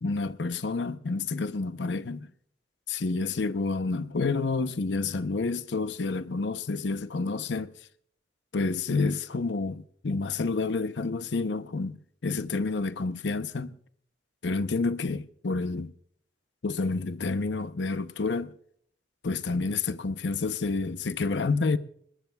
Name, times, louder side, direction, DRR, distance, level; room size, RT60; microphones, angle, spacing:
voice 1, 0.0-2.3 2.9-7.7 8.5-13.8 14.4-15.9 16.6-18.5 19.2-21.8, left 3 dB, 90° left, 0.7 m, -29 dB
27.5 x 14.0 x 2.3 m
head